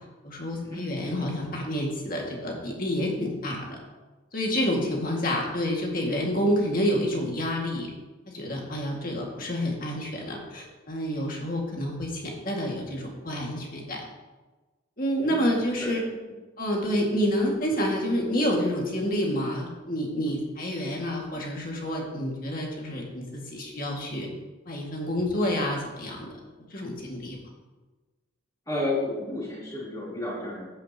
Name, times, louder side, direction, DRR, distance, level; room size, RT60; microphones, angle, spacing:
voice 1, 0.2-3.8 4.3-7.9 8.3-14.0 15.0-16.0 16.6-24.3 24.7-26.3 26.7-27.4, equal, 40° left, -1 dB, 2.1 m, -28 dB
voice 2, 28.7-30.7, left 2 dB, 15° left, -7 dB, 3.5 m, -31 dB
14.0 x 9.3 x 3.0 m, 1.2 s
head